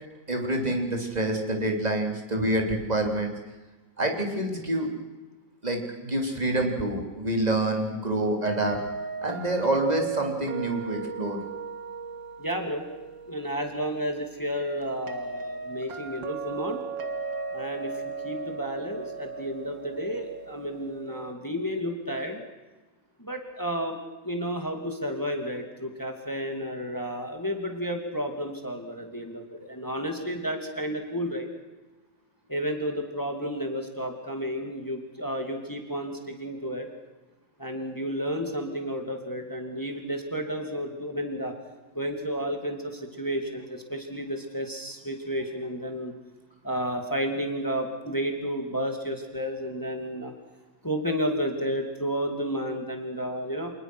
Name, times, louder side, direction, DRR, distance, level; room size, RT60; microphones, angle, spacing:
voice 1, 0.3-3.3 4.0-4.9 5.6-8.8 9.2-11.4, right 1 dB, 20° right, 2 dB, 3.6 m, -27 dB
sound 1, 8.5-21.3, right 5 dB, 75° right, 2.6 m, -37 dB
voice 2, 12.4-12.8 13.3-16.8 17.5-22.4 23.2-24.0 24.2-31.5 32.5-36.9 37.6-41.6 41.9-46.1 46.6-50.3 50.8-53.7, equal, 10° left, 4 dB, 2.5 m, -31 dB
28.0 x 19.5 x 6.3 m, 1.2 s
omnidirectional pair, 2.0 m